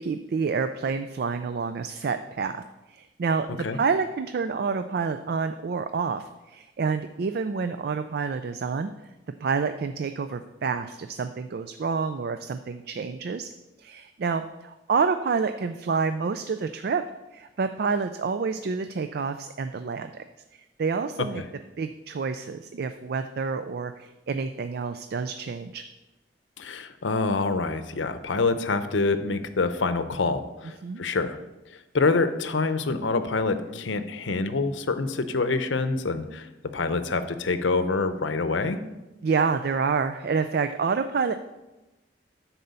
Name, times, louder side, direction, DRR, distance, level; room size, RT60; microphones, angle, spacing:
voice 1, 0.0-8.9 9.4-13.5 13.8-17.0 17.3-20.2 20.5-21.4 21.8-25.8 30.8-31.0 39.2-41.3, right 5 dB, 55° right, 9 dB, 0.4 m, -28 dB
voice 2, 26.6-31.4 31.9-36.5 36.7-38.8, left 3 dB, 85° left, 10 dB, 0.7 m, -26 dB
10.5 x 4.3 x 6.9 m, 1.1 s
head